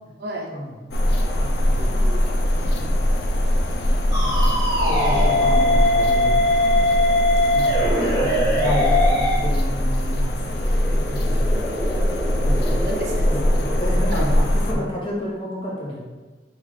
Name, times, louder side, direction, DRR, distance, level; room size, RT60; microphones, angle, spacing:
voice 1, 0.2-0.5 1.8-2.6 4.7-5.7 12.6-13.2 14.1-14.2, right 1 dB, 60° right, -1 dB, 0.8 m, -32 dB
sound 1, 0.9-14.7, equal, 60° left, 0.5 m, -21 dB
voice 2, 1.4-2.0 2.7-3.0 4.2-6.8 7.5-12.8 13.3-16.0, equal, 30° left, -4 dB, 1.2 m, -31 dB
sound 2, 4.1-9.4, left 1 dB, 20° right, 1.4 m, -20 dB
sound 3, 10.3-14.6, equal, ahead, 0.4 m, -32 dB
4.8 x 2.6 x 4.2 m, 1.4 s
head